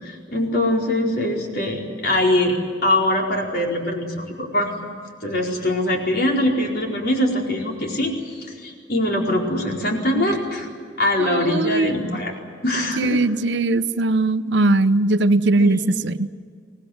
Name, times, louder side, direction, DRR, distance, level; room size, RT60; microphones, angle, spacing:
voice 1, 0.0-2.6 2.8-4.7 5.2-10.7 11.0-12.3 12.6-13.2 15.6-15.8, left 1 dB, 60° left, 0 dB, 4.6 m, -22 dB
voice 2, 11.2-12.0 13.0-16.3, right 2 dB, 70° right, 13 dB, 0.8 m, -20 dB
25.0 x 18.5 x 9.5 m, 2.1 s
head